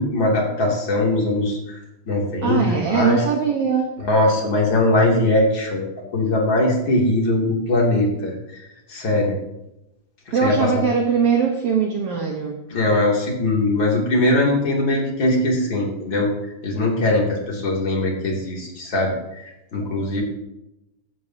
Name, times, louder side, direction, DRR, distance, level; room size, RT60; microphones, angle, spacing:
voice 1, 0.0-1.8 2.1-3.2 4.0-8.6 8.9-9.4 10.3-10.8 12.7-16.3 16.6-20.2, left 2 dB, 40° left, -2 dB, 3.4 m, -21 dB
voice 2, 2.4-3.9 10.3-12.6, right 6 dB, 60° right, 1 dB, 1.9 m, -21 dB
15.5 x 12.0 x 2.8 m, 0.89 s
omnidirectional pair, 3.5 m